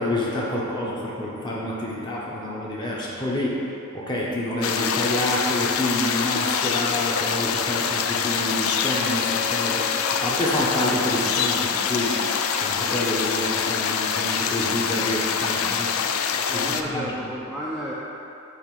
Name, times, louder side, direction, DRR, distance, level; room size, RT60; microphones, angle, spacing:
voice 1, 0.0-9.8 10.2-12.1 12.6-16.2 16.5-17.1, left 1 dB, 20° left, -5 dB, 1.0 m, -28 dB
sound 1, 4.6-16.8, left 7 dB, 85° left, 0.4 m, -25 dB
sound 2, 6.8-13.6, left 2 dB, 55° left, 1.4 m, -36 dB
voice 2, 16.3-17.9, equal, 5° left, -8 dB, 0.5 m, -32 dB
7.9 x 2.8 x 5.3 m, 2.8 s
head